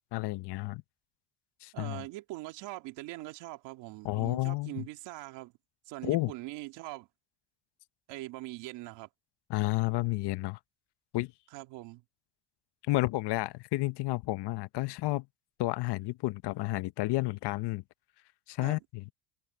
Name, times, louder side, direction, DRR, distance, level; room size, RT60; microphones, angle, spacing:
voice 1, 0.1-0.8 1.6-2.0 4.0-4.9 6.0-6.3 9.5-10.6 11.1-11.3 12.9-15.3 15.6-17.8 18.5-19.0, left 19 dB, 65° left, 0.9 m, -31 dB
voice 2, 1.7-5.5 5.9-7.1 8.1-9.1 11.5-12.0 18.6-18.8, right 19 dB, 80° right, 2.3 m, -42 dB
open air
supercardioid pair, 85°, 43 cm